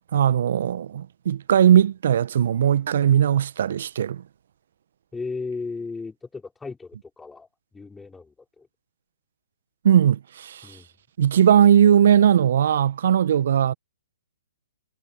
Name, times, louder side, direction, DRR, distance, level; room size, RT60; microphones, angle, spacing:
voice 1, 0.1-4.2 9.8-10.8 11.2-13.7, right 9 dB, 55° right, 1.4 m, -19 dB
voice 2, 5.1-8.7 10.6-10.9, left 4 dB, 10° left, 5.7 m, -35 dB
figure-of-eight pair, 125°, 0 cm